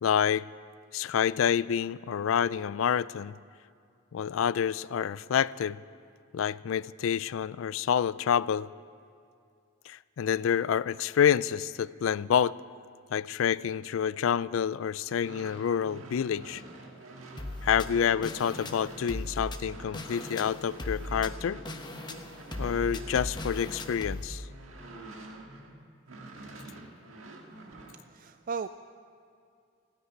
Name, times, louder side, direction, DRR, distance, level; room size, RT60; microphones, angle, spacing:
voice 1, 0.0-0.5 0.9-3.3 4.1-5.8 6.3-8.7 9.9-12.6 13.1-16.6 17.6-21.6 22.6-24.4, left 8 dB, 65° left, 19 dB, 0.3 m, -28 dB
sound 1, 15.1-25.7 26.1-28.0, right 2 dB, 70° right, 1.8 m, -47 dB
sound 2, 17.4-24.2, left 1 dB, 20° left, 0.9 m, -38 dB
voice 2, 27.8-28.7, right 5 dB, 40° right, 10 dB, 0.3 m, -37 dB
16.0 x 9.7 x 9.3 m, 2.4 s
head